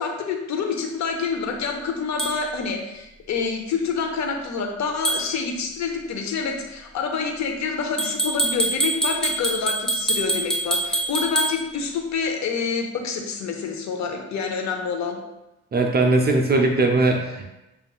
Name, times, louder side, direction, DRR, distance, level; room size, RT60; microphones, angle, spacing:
voice 1, 0.0-15.2, left 5 dB, 65° left, 3 dB, 0.7 m, -27 dB
sound 1, 2.2-2.3 5.0-5.2 8.0-11.5, right 1 dB, ahead, 0.9 m, -24 dB
voice 2, 15.7-17.5, right 2 dB, 35° right, 2 dB, 0.5 m, -20 dB
6.8 x 2.5 x 2.3 m, 0.95 s
cardioid pair, 90°, 30 cm